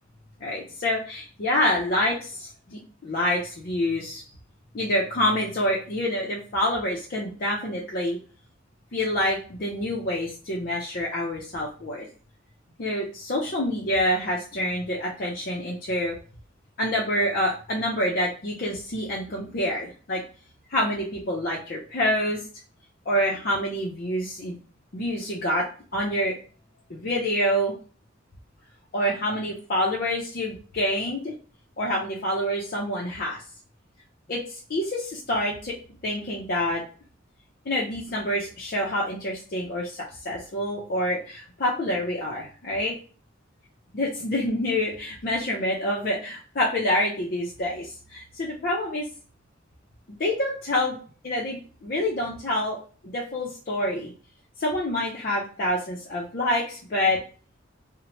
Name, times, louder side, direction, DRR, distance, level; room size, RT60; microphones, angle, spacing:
voice 1, 0.4-4.2 4.7-8.2 8.9-12.1 12.8-16.2 16.8-20.2 20.7-22.4 23.1-24.6 24.9-25.7 25.9-26.4 26.9-27.7 28.9-31.3 31.8-33.4 34.3-35.7 36.0-36.8 37.7-42.9 43.9-49.1 50.1-51.0 51.2-52.8 53.0-54.1 54.6-57.2, left 1 dB, 50° left, -4 dB, 0.5 m, -27 dB
2.8 x 2.1 x 2.9 m, 0.39 s
head